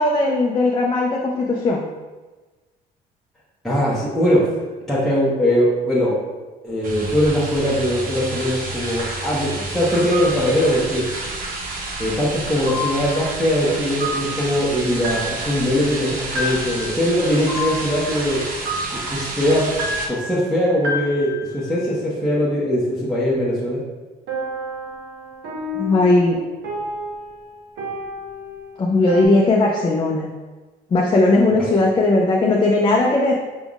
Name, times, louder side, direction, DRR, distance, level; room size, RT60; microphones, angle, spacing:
voice 1, 0.0-1.8 25.7-26.4 28.8-30.3 30.9-33.4, left 2 dB, 30° left, -1 dB, 0.5 m, -18 dB
voice 2, 3.6-4.4 4.9-6.2 6.6-11.1 12.0-18.4 18.9-19.7 20.1-23.8 31.5-31.6, equal, ahead, -9 dB, 0.9 m, -21 dB
sound 1, 6.8-20.1, right 2 dB, 55° right, 0.8 m, -30 dB
sound 2, 9.9-10.5 12.7-21.9 24.3-29.2, left 1 dB, 85° right, 0.9 m, -31 dB
5.2 x 3.5 x 2.4 m, 1.3 s
cardioid pair, 110°, 17 cm